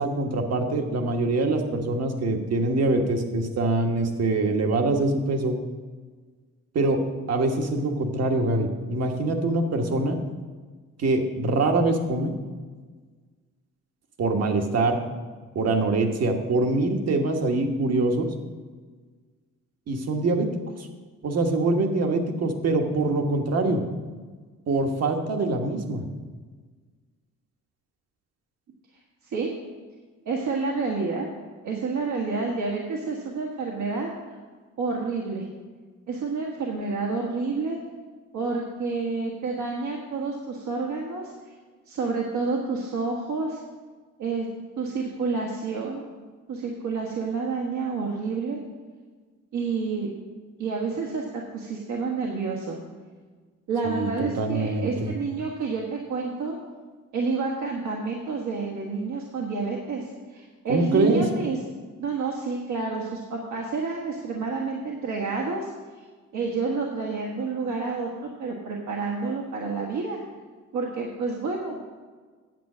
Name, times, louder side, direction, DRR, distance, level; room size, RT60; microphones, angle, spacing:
voice 1, 0.0-5.5 6.7-7.0 7.3-10.2 11.0-12.3 14.2-15.0 15.5-18.3 19.9-20.5 20.8-20.9 21.2-23.8 24.7-26.0 53.8-55.1 60.7-61.2, right 2 dB, 55° right, 4 dB, 1.5 m, -24 dB
voice 2, 30.2-31.3 31.6-34.1 34.8-35.5 36.1-37.8 38.3-41.5 41.9-43.6 44.2-44.5 44.8-46.0 46.5-48.6 49.5-50.1 50.6-52.8 53.7-56.6 57.1-61.6 62.0-66.1 66.3-70.2 70.7-71.8, right 4 dB, 75° right, -1 dB, 1.6 m, -29 dB
9.2 x 7.7 x 6.2 m, 1.5 s
cardioid pair, 90°, 30 cm